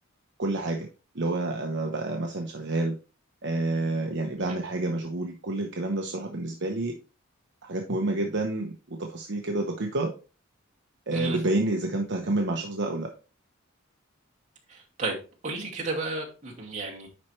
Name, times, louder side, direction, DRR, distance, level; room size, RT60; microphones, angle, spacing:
voice 1, 0.4-0.9 1.1-2.9 3.4-6.9 7.6-10.1 11.1-13.1, right 2 dB, 55° right, 2 dB, 0.9 m, -29 dB
voice 2, 14.7-15.2 15.4-17.1, right 2 dB, 35° right, -2 dB, 2.3 m, -32 dB
10.5 x 4.4 x 3.2 m, 0.34 s
head